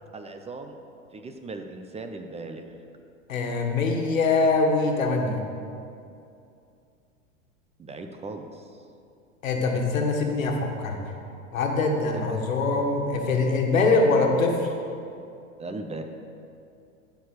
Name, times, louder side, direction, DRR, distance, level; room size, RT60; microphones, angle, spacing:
voice 1, 0.1-0.8 1.1-2.7 7.8-8.8 12.1-12.3 15.6-16.0, right 3 dB, 15° right, 5 dB, 0.7 m, -38 dB
voice 2, 3.3-5.4 9.4-11.0 11.5-14.7, left 3 dB, 85° left, 2 dB, 1.7 m, -23 dB
13.5 x 4.9 x 6.6 m, 2.6 s
hypercardioid pair, 105°, 39 cm